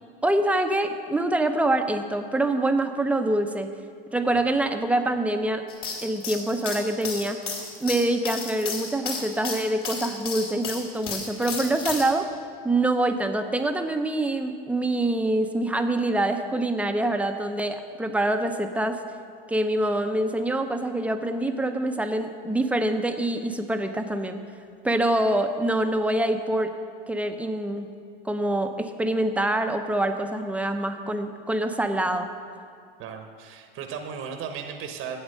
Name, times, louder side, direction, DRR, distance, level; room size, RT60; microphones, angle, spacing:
voice 1, 0.2-3.7 4.1-5.6 6.0-7.4 7.8-12.3 12.6-19.0 19.5-24.4 24.8-26.7 27.1-27.9 28.2-32.3, right 1 dB, 5° right, 7 dB, 0.7 m, -25 dB
sound 1, 5.7-12.1, left 4 dB, 45° left, 2.6 m, -33 dB
voice 2, 33.0-35.2, right 7 dB, 45° right, 5 dB, 1.1 m, -36 dB
10.0 x 7.9 x 6.6 m, 2.2 s
hypercardioid pair, 95°, 30 cm